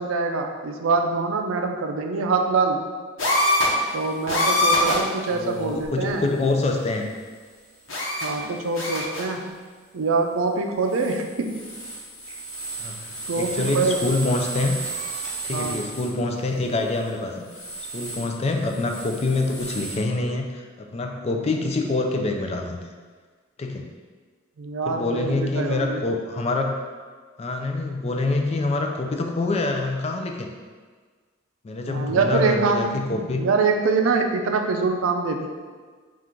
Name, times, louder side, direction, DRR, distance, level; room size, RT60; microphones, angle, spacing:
voice 1, 0.0-2.8 3.9-6.3 8.2-9.6 9.9-11.5 13.3-14.0 15.5-15.8 24.6-26.0 31.9-35.5, right 4 dB, 90° right, 4 dB, 0.4 m, -24 dB
sound 1, 3.2-3.9 4.3-5.1 5.8-5.9 7.9-8.4 8.7-9.3 10.9-11.2 11.5-16.1 17.5-18.2 18.7-20.0, left 1 dB, 75° left, 1.0 m, -27 dB
voice 2, 5.3-7.1 12.8-14.8 15.4-17.5 17.9-22.8 23.6-23.9 24.9-26.8 27.4-30.5 31.6-33.4, left 2 dB, 30° left, 3 dB, 0.3 m, -26 dB
3.7 x 2.4 x 4.3 m, 1.5 s
head